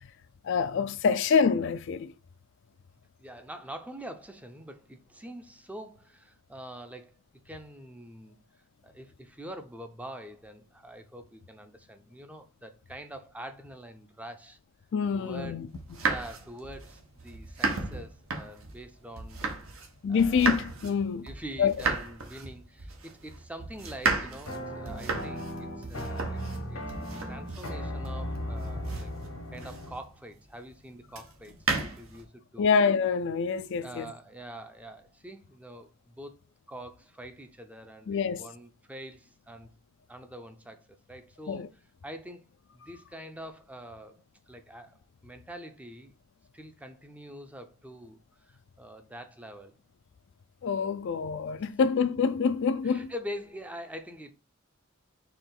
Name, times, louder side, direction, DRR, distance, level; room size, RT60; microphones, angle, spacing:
voice 1, 0.4-2.1 14.9-15.7 20.0-21.3 21.6-21.7 32.6-34.1 38.1-38.5 41.5-41.7 50.6-53.1, left 6 dB, 60° left, 0.4 m, -26 dB
voice 2, 3.2-7.2 7.4-8.4 8.8-14.6 15.1-15.6 16.0-20.4 21.2-26.4 26.7-26.8 27.3-29.1 29.5-32.7 33.8-36.4 36.7-39.8 40.1-41.7 42.0-42.5 42.7-46.1 46.5-49.8 52.8-54.3, equal, 5° right, 0.5 m, -45 dB
sound 1, 15.7-19.9 20.2-30.1 31.1-32.2, right 4 dB, 80° right, 1.0 m, -34 dB
sound 2, 24.5-30.0, equal, 90° left, 1.3 m, -37 dB
4.4 x 3.0 x 3.8 m
head